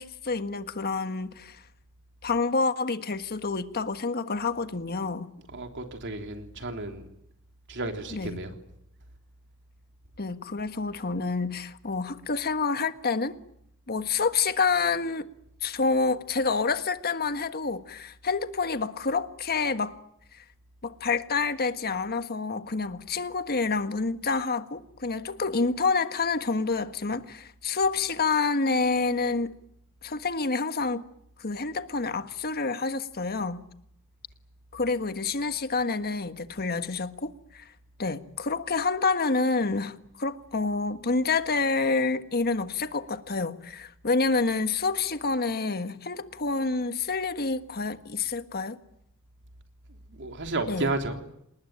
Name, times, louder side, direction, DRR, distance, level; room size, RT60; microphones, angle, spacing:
voice 1, 0.0-1.6 2.2-5.3 8.1-8.4 10.2-13.4 13.9-15.3 15.6-19.9 20.8-29.5 30.0-31.0 31.4-33.7 34.7-37.7 38.0-48.8 50.7-50.9, left 4 dB, 45° left, 1.5 m, -28 dB
voice 2, 5.5-7.0 7.7-8.5 50.1-51.2, right 2 dB, 55° right, 3.4 m, -32 dB
28.0 x 20.0 x 9.1 m
head